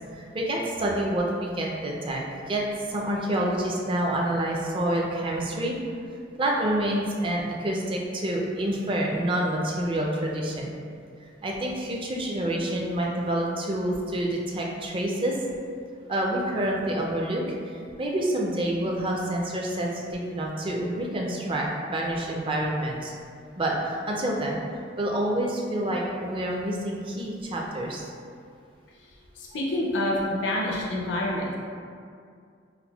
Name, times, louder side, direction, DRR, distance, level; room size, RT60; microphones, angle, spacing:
voice 1, 0.1-5.8 6.4-10.7 11.4-15.4 16.1-23.1 23.6-24.6 25.0-28.2, right 1 dB, 30° right, -2 dB, 0.4 m, -28 dB
voice 2, 29.4-31.5, left 1 dB, 75° left, -3 dB, 0.5 m, -27 dB
5.7 x 2.1 x 2.3 m, 2.3 s
head